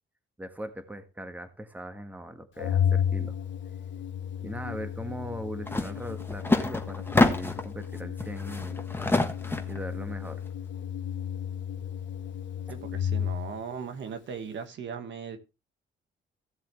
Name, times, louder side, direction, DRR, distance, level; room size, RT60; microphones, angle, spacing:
voice 1, 0.4-3.4 4.4-8.8 9.7-10.4, equal, 10° right, 1.6 m, -39 dB
Organ, 2.6-13.6, left 9 dB, 70° left, 1.1 m, -33 dB
sound 1, 5.7-5.9 6.2-7.7 8.2-9.8, left 2 dB, 10° left, 1.4 m, -26 dB
voice 2, 12.7-15.4, right 6 dB, 65° right, 1.6 m, -38 dB
16.0 x 7.3 x 3.2 m
cardioid pair, 90°, 20 cm